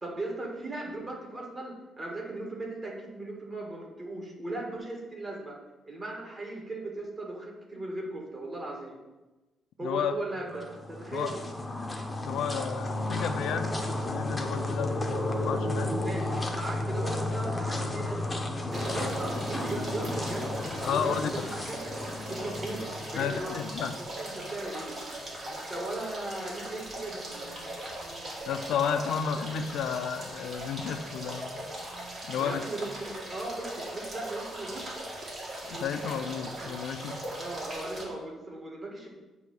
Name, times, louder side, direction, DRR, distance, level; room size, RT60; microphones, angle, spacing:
voice 1, 0.0-5.6 5.9-9.0 9.8-11.5 16.0-18.4 18.7-20.5 20.9-21.9 22.3-23.7 24.0-25.0 25.5-27.8 32.4-34.9 37.3-39.1, right 2 dB, 25° right, -1 dB, 1.6 m, -38 dB
voice 2, 9.8-10.1 11.1-11.3 12.2-16.0 19.0-19.1 20.9-21.3 23.1-23.9 28.5-31.7 32.2-32.6 35.7-37.2, left 7 dB, 85° left, 8 dB, 0.5 m, -32 dB
sound 1, 10.5-23.8, left 1 dB, 10° left, 0.7 m, -33 dB
sound 2, 18.7-38.0, right 1 dB, 40° right, 1.8 m, -39 dB
8.1 x 2.8 x 6.1 m, 1.1 s
cardioid pair, 135°, 0 cm